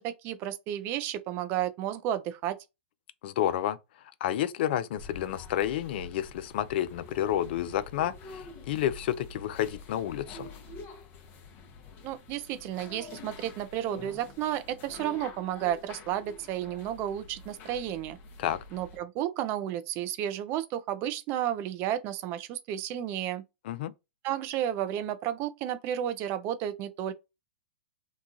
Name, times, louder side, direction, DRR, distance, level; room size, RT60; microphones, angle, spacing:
voice 1, 0.0-2.6 12.0-18.2 18.7-23.4 24.2-27.1, right 11 dB, 35° right, 0.5 m, -32 dB
voice 2, 3.2-3.8 4.2-10.5 18.4-18.6 23.6-23.9, left 11 dB, 55° left, 0.4 m, -30 dB
sound 1, 5.0-19.0, left 3 dB, 30° left, 0.8 m, -47 dB
2.9 x 2.3 x 2.7 m
hypercardioid pair, 125°, 7 cm